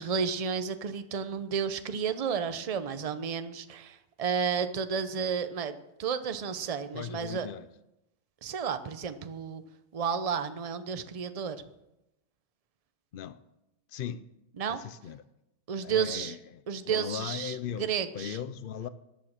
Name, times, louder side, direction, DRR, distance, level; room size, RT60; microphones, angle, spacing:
voice 1, 0.0-7.5 8.4-9.6 9.9-11.6 14.6-14.8 15.7-16.3 16.7-18.4, right 6 dB, 35° right, 0.6 m, -32 dB
voice 2, 6.9-7.7 13.1-13.4 13.9-14.3 14.7-15.2 15.8-18.9, left 9 dB, 85° left, 0.4 m, -38 dB
13.5 x 9.4 x 6.5 m
omnidirectional pair, 1.6 m